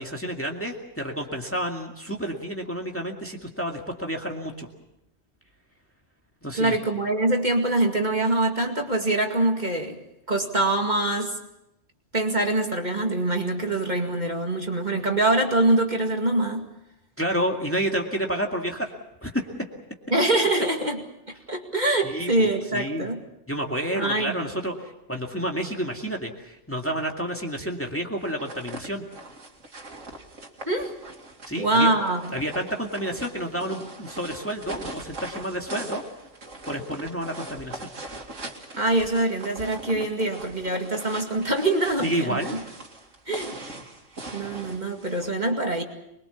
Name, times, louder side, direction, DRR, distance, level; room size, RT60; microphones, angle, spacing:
voice 1, 0.0-4.7 6.4-6.8 17.2-18.9 19.2-19.7 22.0-23.1 23.5-29.0 31.5-31.9 32.3-36.0 36.7-37.9 42.0-42.6, equal, 10° left, 1 dB, 2.2 m, -30 dB
voice 2, 6.6-10.0 10.3-11.4 12.1-16.7 20.1-21.0 21.5-23.2 23.9-24.5 30.7-30.9 31.6-32.2 38.8-42.6 43.3-43.6 44.3-45.8, right 2 dB, 35° right, 3 dB, 2.4 m, -24 dB
sound 1, 28.2-45.3, right 2 dB, 85° right, 2.8 m, -41 dB
24.5 x 22.0 x 7.1 m, 0.86 s
omnidirectional pair, 1.3 m